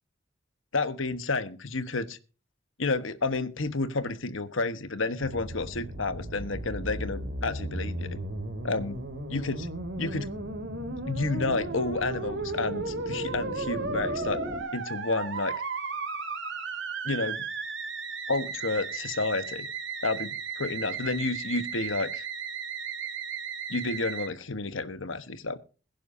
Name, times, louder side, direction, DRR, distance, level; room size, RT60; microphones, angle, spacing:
voice 1, 0.7-2.2 2.8-8.2 8.6-9.0 9.3-9.7 10.0-10.3 11.1-14.4 14.7-15.5 17.0-17.4 18.3-19.7 20.0-22.3 23.7-25.6, left 3 dB, 80° left, 12 dB, 1.3 m, -30 dB
Musical instrument, 5.2-24.3, right 3 dB, 65° right, 2.8 m, -35 dB
sound 1, 5.4-14.6, equal, 40° right, 5.0 m, -42 dB
22.0 x 10.5 x 2.7 m, 0.35 s
head